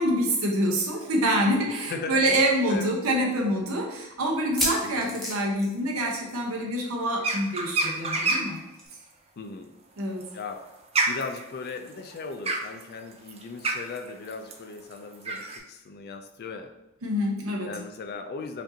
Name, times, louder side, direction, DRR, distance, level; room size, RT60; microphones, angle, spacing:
voice 1, 0.0-8.6 10.0-10.2 17.0-17.7, right 1 dB, 80° right, 0 dB, 0.8 m, -26 dB
voice 2, 1.4-2.3 2.7-2.9 4.8-5.2 9.4-9.7 10.3-10.7 11.0-16.7 17.6-18.6, left 4 dB, 50° left, 5 dB, 0.4 m, -38 dB
sound 1, 1.7-1.8 2.1-2.2 2.8-2.9 4.3-6.5 6.8-7.0 7.2-7.3 8.8-8.9, left 1 dB, ahead, 1.0 m, -32 dB
sound 2, 7.2-8.6 10.0-15.6, right 3 dB, 30° right, 0.5 m, -28 dB
5.1 x 2.6 x 2.7 m, 0.98 s
head